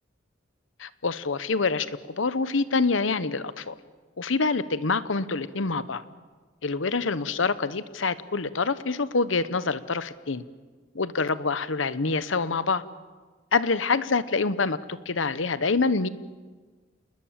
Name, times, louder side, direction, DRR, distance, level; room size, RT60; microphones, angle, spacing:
voice 1, 0.8-3.7 4.2-6.0 6.6-10.4 10.9-12.8 13.5-16.1, left 4 dB, 85° left, 15 dB, 1.0 m, -26 dB
28.5 x 20.5 x 7.4 m, 1.4 s
head